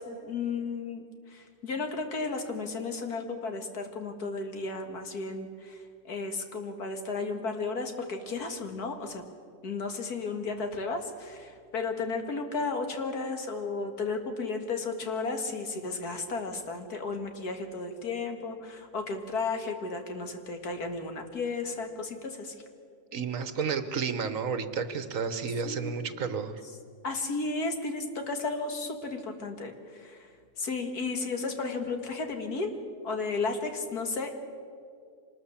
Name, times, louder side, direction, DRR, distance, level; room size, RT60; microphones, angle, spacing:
voice 1, 0.0-9.2 9.6-22.5 25.6-26.1 27.0-30.3 30.6-32.7 33.0-34.3, left 3 dB, 80° left, 5 dB, 2.4 m, -34 dB
voice 2, 23.1-26.6, right 6 dB, 60° right, 11 dB, 1.5 m, -31 dB
25.0 x 20.0 x 7.2 m, 2.2 s
omnidirectional pair, 1.6 m